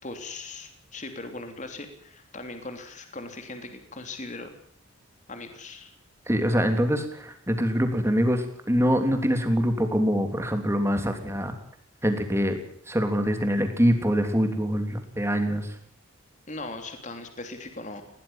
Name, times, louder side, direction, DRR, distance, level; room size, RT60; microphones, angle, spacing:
voice 1, 0.0-4.5 5.3-5.9 16.5-18.1, left 2 dB, 35° left, 6 dB, 3.3 m, -39 dB
voice 2, 6.3-11.5 12.0-12.6 12.9-15.7, equal, 10° right, 6 dB, 3.3 m, -24 dB
21.0 x 18.0 x 7.4 m, 0.64 s
head